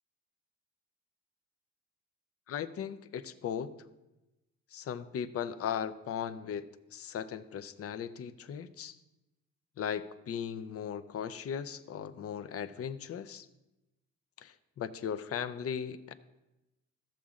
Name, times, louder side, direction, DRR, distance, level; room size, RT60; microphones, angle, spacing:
voice 1, 2.5-3.7 4.7-9.0 9.8-13.5 14.4-16.1, left 8 dB, 50° left, 12 dB, 0.6 m, -37 dB
14.5 x 7.1 x 2.5 m, 1.0 s
cardioid pair, 90°, 30 cm